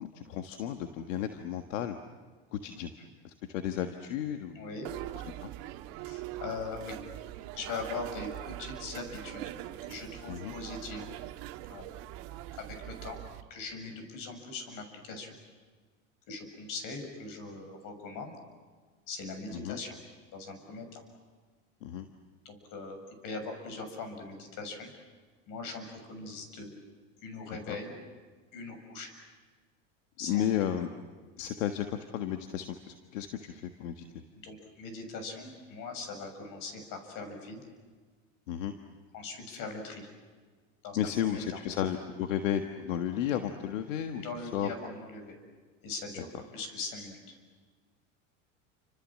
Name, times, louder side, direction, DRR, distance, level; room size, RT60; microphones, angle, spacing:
voice 1, 0.0-2.0 2.5-2.9 3.2-4.6 5.4-5.5 10.3-10.5 19.5-19.8 21.8-22.1 27.7-27.8 30.2-30.9 31.4-34.0 38.5-38.7 41.0-44.7, left 10 dB, 80° left, 6 dB, 1.6 m, -33 dB
voice 2, 4.6-4.9 6.0-7.0 7.5-9.4 9.8-11.1 11.7-11.9 12.6-13.2 13.5-15.4 16.3-18.4 19.1-20.0 20.3-21.0 22.5-24.9 25.5-26.7 27.2-27.9 28.5-29.2 30.2-30.5 34.4-37.7 39.1-40.1 40.8-41.4 44.2-45.3 45.8-46.3 46.5-47.4, left 3 dB, 60° left, 6 dB, 7.0 m, -41 dB
sound 1, 4.8-13.4, right 14 dB, 65° right, 1.8 m, -42 dB
29.5 x 26.5 x 7.6 m, 1.5 s
hypercardioid pair, 95°, 37 cm